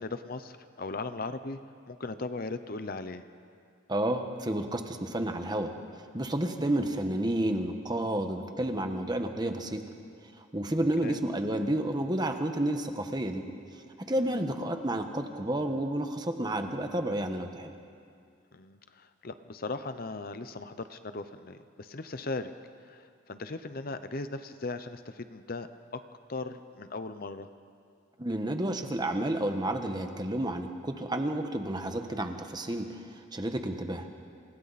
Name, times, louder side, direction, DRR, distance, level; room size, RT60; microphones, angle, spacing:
voice 1, 0.0-1.6 1.9-3.2 11.0-11.2 14.2-14.4 18.5-22.5 22.8-25.7 25.9-26.0 26.3-27.5, left 3 dB, 45° left, 10 dB, 0.8 m, -38 dB
voice 2, 3.9-5.7 6.1-9.9 10.4-13.4 14.0-17.7 28.2-34.1, right 1 dB, 20° right, 5 dB, 1.3 m, -31 dB
28.0 x 27.5 x 4.2 m, 2.3 s
head